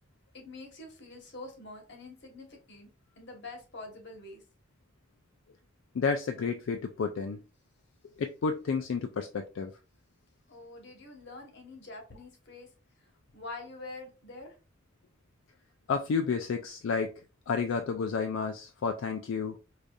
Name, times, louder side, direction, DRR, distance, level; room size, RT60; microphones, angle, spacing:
voice 1, 0.3-2.9 3.2-4.4 10.5-12.7 13.3-14.6, left 2 dB, 60° left, 1.1 m, -45 dB
voice 2, 5.9-7.4 8.2-9.7 15.9-19.6, left 5 dB, 80° left, 0.4 m, -31 dB
4.8 x 2.6 x 2.3 m
head